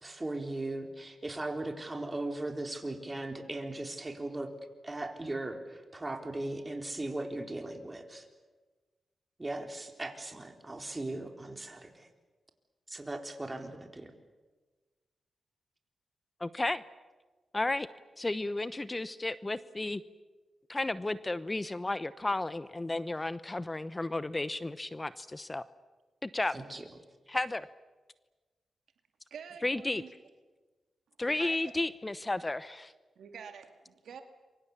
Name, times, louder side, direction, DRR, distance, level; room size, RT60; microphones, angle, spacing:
voice 1, 0.0-4.5 4.8-8.3 9.4-12.1 12.9-14.1 26.5-26.8, right 2 dB, 25° right, 4 dB, 4.0 m, -38 dB
voice 2, 16.4-16.8 17.5-17.9 18.2-20.0 20.7-25.6 26.2-26.6 27.3-27.7 29.6-30.0 31.2-32.9, left 2 dB, 25° left, 15 dB, 0.9 m, -33 dB
voice 3, 29.3-30.1 31.3-31.7 33.2-34.2, right 7 dB, 80° right, 6 dB, 2.2 m, -47 dB
27.5 x 24.0 x 7.3 m, 1.3 s
cardioid pair, 55°, 0 cm